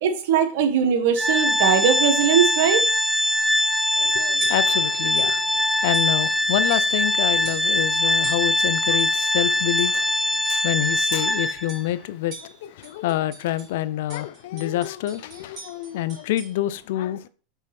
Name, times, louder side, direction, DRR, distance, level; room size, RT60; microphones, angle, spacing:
voice 1, 0.0-2.8, right 8 dB, 75° right, 1.3 m, -20 dB
Organ, 1.2-11.8, left 1 dB, 5° right, 0.3 m, -22 dB
sound 1, 3.8-4.0 4.4-4.8 5.2-5.4 5.9-6.4 6.7-7.1 7.4-7.8 8.2-9.2 9.8-10.1 10.4-10.7 11.1-11.3 11.7-12.0 12.3-13.7 14.1-16.6, right 4 dB, 45° right, 3.0 m, -42 dB
voice 2, 4.0-17.3, left 13 dB, 75° left, 0.5 m, -27 dB
5.4 x 4.1 x 5.8 m
supercardioid pair, 115°, 0 cm